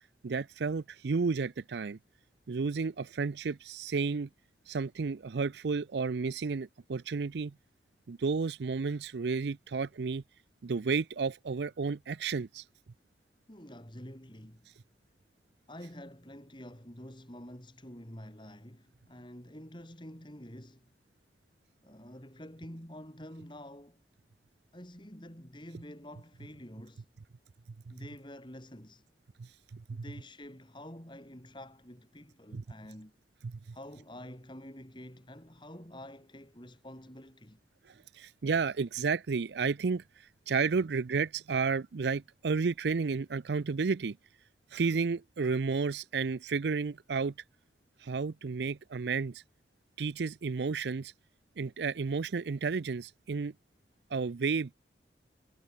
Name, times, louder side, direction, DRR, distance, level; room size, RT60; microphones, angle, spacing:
voice 1, 0.2-2.0 2.5-4.3 4.7-7.5 8.1-10.2 10.6-12.6 27.9-28.0 29.4-30.0 32.5-32.6 33.4-33.6 38.2-40.0 40.5-44.2 44.7-47.3 48.0-49.4 50.0-51.1 51.6-53.5 54.1-54.7, right 4 dB, 70° right, 0.5 m, -32 dB
voice 2, 13.5-14.7 15.7-20.9 21.8-24.0 24.7-27.1 27.9-29.0 29.9-33.1 33.7-37.6, left 1 dB, 25° left, 4.9 m, -48 dB
head